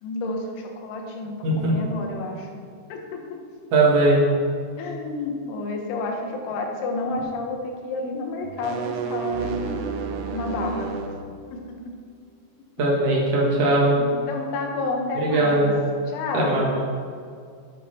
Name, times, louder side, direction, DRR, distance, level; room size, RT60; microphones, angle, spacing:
voice 1, 0.0-2.6 2.9-3.4 4.8-9.6 10.3-10.9 11.5-12.0 13.4-15.7 16.1-16.6, left 3 dB, 75° left, 2 dB, 3.4 m, -30 dB
voice 2, 3.7-4.2 12.8-13.9 15.1-15.7 16.3-16.7, right 2 dB, 65° right, -4 dB, 1.5 m, -19 dB
sound 1, 8.4-11.2, right 5 dB, 90° right, 2.5 m, -30 dB
9.0 x 8.4 x 4.4 m, 2.2 s
omnidirectional pair, 5.8 m